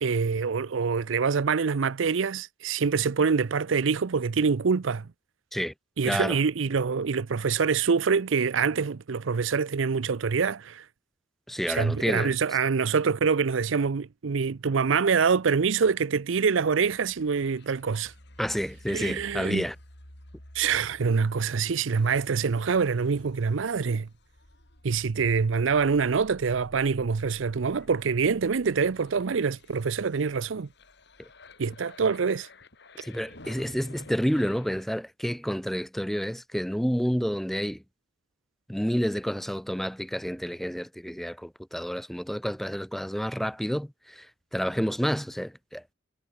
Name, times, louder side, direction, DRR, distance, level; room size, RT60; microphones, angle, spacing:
voice 1, 0.0-5.1 6.0-10.8 11.7-18.1 18.9-19.7 20.5-24.1 24.8-30.7 31.6-32.5, right 5 dB, 80° right, 0.6 m, -25 dB
voice 2, 6.0-6.4 11.5-12.3 18.4-19.8 33.0-37.8 38.7-44.3 44.5-45.8, equal, ahead, 0.6 m, -29 dB
sound 1, 16.5-34.8, left 1 dB, 60° left, 6.7 m, -52 dB
head